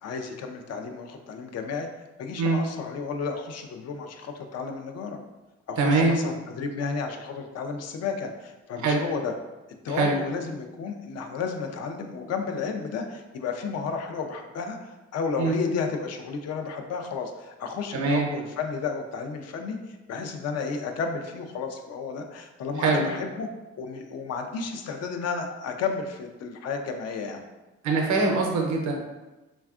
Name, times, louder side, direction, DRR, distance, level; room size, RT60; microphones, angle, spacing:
voice 1, 0.0-1.9 2.2-5.2 5.7-9.3 9.8-23.5 23.8-27.4, left 5 dB, 55° left, 5 dB, 0.4 m, -32 dB
voice 2, 5.8-6.2 8.8-9.0 9.9-10.1 15.4-15.6 17.9-18.3 22.8-23.0 27.8-28.9, right 3 dB, 70° right, 0 dB, 0.6 m, -23 dB
3.4 x 2.2 x 2.3 m, 1.1 s
cardioid pair, 90°, 30 cm